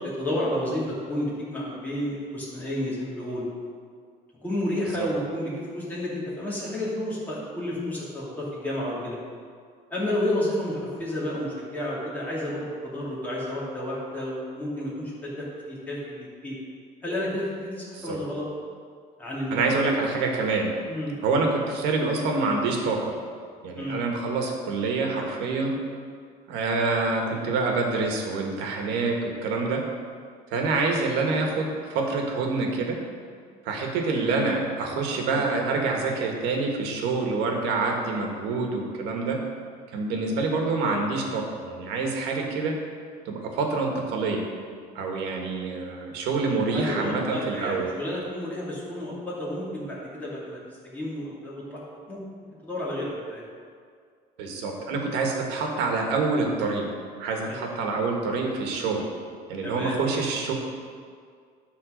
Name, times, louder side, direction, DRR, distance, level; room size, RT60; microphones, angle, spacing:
voice 1, 0.0-3.5 4.4-9.2 9.9-16.6 17.0-18.5 19.2-19.9 20.8-21.1 23.8-24.0 46.7-50.6 50.8-51.8 52.1-52.2 52.6-53.5 57.4-57.6 59.6-60.0, left 1 dB, 10° left, -8 dB, 2.6 m, -31 dB
voice 2, 19.5-20.7 21.2-23.1 23.6-25.8 26.5-29.8 30.5-33.0 33.7-39.4 39.9-42.8 43.3-44.4 45.0-47.9 54.4-56.9 57.2-59.1 59.5-60.5, right 3 dB, 75° right, 1 dB, 1.7 m, -26 dB
13.0 x 4.3 x 6.5 m, 2.1 s
cardioid pair, 170°, 18 cm